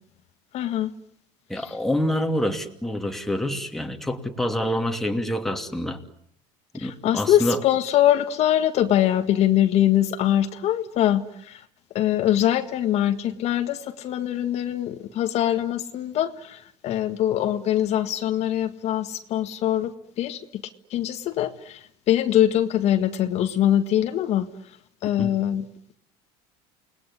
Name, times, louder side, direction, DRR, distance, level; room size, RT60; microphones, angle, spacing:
voice 1, 0.5-0.9 1.6-1.7 6.8-11.6 11.9-20.6 20.9-24.5 25.0-25.6, left 11 dB, 50° left, 8 dB, 1.8 m, -23 dB
voice 2, 1.5-6.0 6.7-7.6 25.2-25.3, left 1 dB, ahead, 4 dB, 2.7 m, -27 dB
29.0 x 20.0 x 9.9 m, 0.70 s
supercardioid pair, 125°, 14 cm